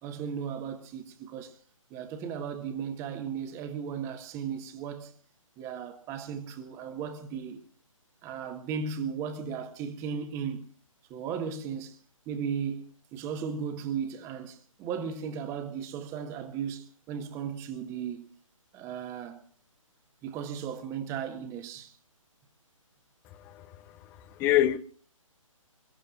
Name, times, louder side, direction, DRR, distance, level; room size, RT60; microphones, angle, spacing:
voice 1, 0.0-1.6 1.9-5.1 5.6-7.6 8.2-10.7 11.1-12.0 12.3-18.3 18.7-19.4 20.2-21.9, right 7 dB, 15° right, 1.6 m, -36 dB
voice 2, 23.3-24.8, left 13 dB, 10° left, 0.6 m, -27 dB
28.5 x 15.5 x 2.6 m
figure-of-eight pair, 140°, 17 cm